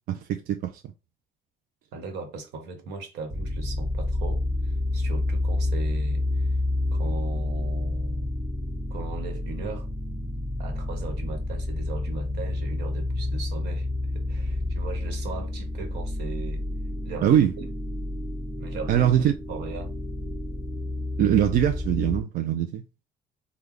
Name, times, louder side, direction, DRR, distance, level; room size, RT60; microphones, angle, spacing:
voice 1, 0.1-0.7 17.2-17.5 18.9-19.3 21.2-22.8, right 10 dB, 60° right, 0.4 m, -22 dB
voice 2, 1.9-6.5 6.9-8.3 8.9-10.2 10.6-13.9 14.1-16.7 17.0-17.4 18.6-19.0 19.5-19.9, right 4 dB, 85° right, 1.1 m, -38 dB
sound 1, 3.3-22.2, left 2 dB, 40° right, 1.1 m, -29 dB
3.2 x 2.2 x 3.7 m
cardioid pair, 110°, 17 cm